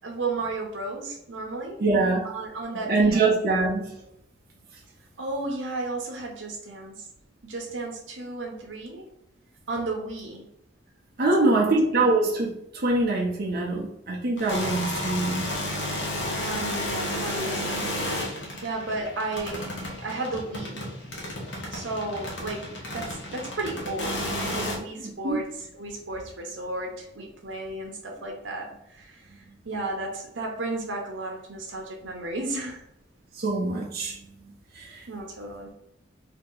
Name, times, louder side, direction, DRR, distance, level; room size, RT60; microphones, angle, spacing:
voice 1, 0.0-1.8 2.2-3.3 5.2-7.0 7.4-9.0 9.7-10.5 11.4-11.7 16.4-17.9 18.6-20.9 21.7-22.7 22.9-24.3 24.5-29.2 29.6-32.8 35.1-35.7, right 2 dB, 90° right, 1 dB, 0.9 m, -33 dB
voice 2, 1.8-2.3 2.8-3.9 11.2-15.7 25.0-25.4 33.4-34.2 34.7-35.0, right 2 dB, 55° right, -3 dB, 0.8 m, -24 dB
sound 1, 14.4-24.8, left 1 dB, 75° left, 1.0 m, -32 dB
2.9 x 2.9 x 3.7 m, 0.79 s
head